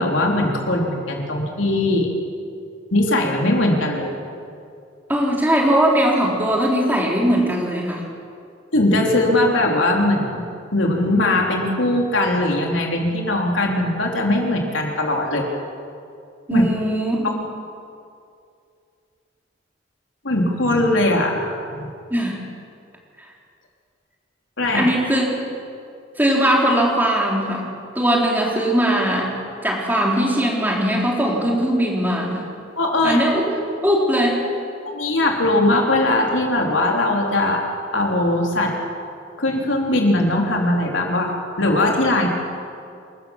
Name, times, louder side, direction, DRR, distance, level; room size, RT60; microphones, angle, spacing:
voice 1, 0.0-2.1 2.9-4.2 8.7-10.4 10.7-15.5 16.5-16.6 20.2-21.9 24.6-24.9 32.8-33.2 34.8-37.6 37.9-38.8 39.4-42.3, left 1 dB, 90° left, 0 dB, 3.7 m, -20 dB
voice 2, 5.1-8.0 16.5-17.4 22.1-22.4 24.7-25.3 26.2-27.6 28.0-29.3 29.6-32.4 33.0-34.4, equal, 10° right, -2 dB, 3.6 m, -19 dB
27.5 x 13.5 x 7.4 m, 2.4 s
head